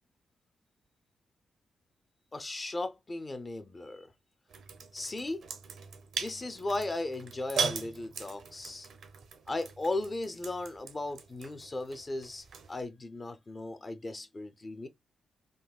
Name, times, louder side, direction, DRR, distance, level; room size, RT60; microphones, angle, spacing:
voice 1, 2.3-4.1 4.9-5.5 6.2-8.9 9.5-14.9, left 2 dB, 20° left, 0.4 m, -36 dB
sound 1, 4.5-12.8, right 5 dB, 75° right, 0.7 m, -40 dB
3.7 x 2.6 x 2.2 m
wide cardioid pair, 150°, 0 cm